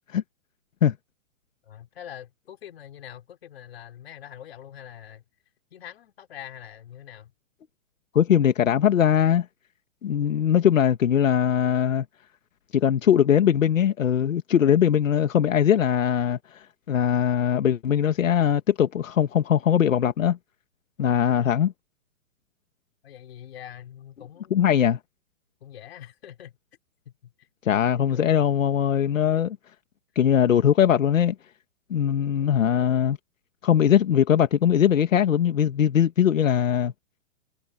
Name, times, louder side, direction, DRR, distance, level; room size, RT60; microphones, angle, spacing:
voice 1, 1.6-5.2 5.7-7.3 23.0-24.8 25.6-26.6 27.0-27.5 27.9-28.4, left 10 dB, 50° left, 5.0 m, -44 dB
voice 2, 8.1-9.5 10.0-12.1 12.7-20.4 21.0-21.7 24.5-25.0 27.6-29.6 30.2-31.4 31.9-33.2 33.6-36.9, left 9 dB, 85° left, 1.8 m, -21 dB
hypercardioid pair, 170°, 38 cm